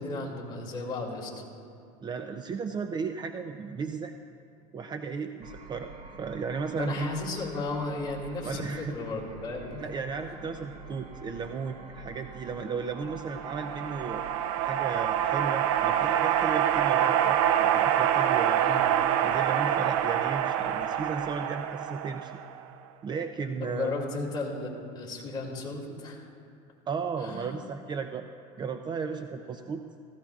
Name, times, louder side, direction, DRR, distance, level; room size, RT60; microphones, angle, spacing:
voice 1, 0.0-1.4 6.7-9.8 18.6-18.8 23.6-26.3 27.2-27.4, left 3 dB, 25° left, -2 dB, 2.5 m, -34 dB
voice 2, 2.0-4.1 4.7-7.1 8.4-9.0 9.8-14.2 14.6-18.6 19.2-22.3 23.0-23.9 26.9-28.3 28.6-29.9, right 5 dB, 25° right, 7 dB, 0.5 m, -35 dB
sound 1, 5.4-21.5, right 4 dB, 50° right, 1.4 m, -45 dB
Project On Hold, 13.1-22.6, right 10 dB, 80° right, 0.6 m, -26 dB
18.0 x 15.5 x 2.4 m, 2.5 s
supercardioid pair, 120°, 17 cm